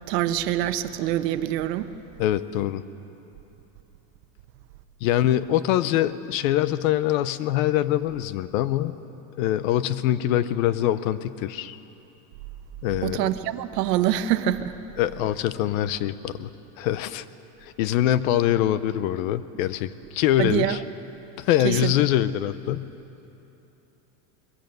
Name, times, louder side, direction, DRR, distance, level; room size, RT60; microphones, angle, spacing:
voice 1, 0.1-1.9 13.0-14.7 20.4-20.8 21.6-21.9, right 12 dB, 80° right, 11 dB, 1.0 m, -25 dB
voice 2, 2.2-2.8 5.0-9.0 9.4-11.8 12.8-13.3 15.0-16.5 16.8-17.2 17.6-20.8 21.4-22.9, left 12 dB, 55° left, 15 dB, 0.7 m, -24 dB
21.0 x 16.0 x 7.9 m, 3.0 s
supercardioid pair, 170°, 48 cm